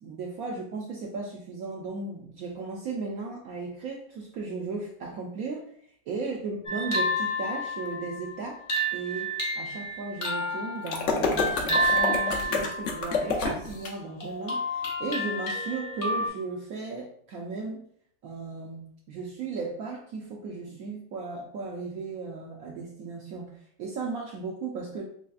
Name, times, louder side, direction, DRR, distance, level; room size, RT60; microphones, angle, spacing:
voice 1, 0.0-5.7 6.1-8.6 8.9-17.9 18.2-25.0, right 4 dB, 75° right, -1 dB, 0.8 m, -36 dB
sound 1, 6.6-13.7 14.2-16.3, equal, 40° left, 0.8 m, -30 dB
sound 2, 10.9-13.9, left 4 dB, 75° left, 0.6 m, -28 dB
4.0 x 3.3 x 2.3 m, 0.62 s
omnidirectional pair, 2.0 m